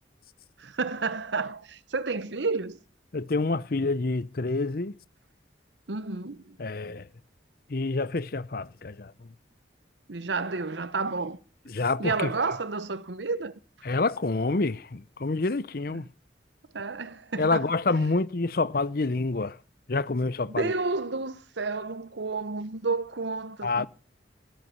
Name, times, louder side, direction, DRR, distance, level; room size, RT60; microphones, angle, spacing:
voice 1, 0.6-2.8 5.9-6.6 10.1-11.4 12.0-13.5 16.7-17.7 20.5-23.9, right 4 dB, 70° right, 1.0 m, -31 dB
voice 2, 3.1-4.9 6.6-7.1 7.7-9.1 11.7-12.3 13.8-16.1 17.4-19.6 19.9-20.7 23.6-23.9, left 3 dB, 50° left, 0.7 m, -27 dB
13.5 x 12.5 x 7.0 m
head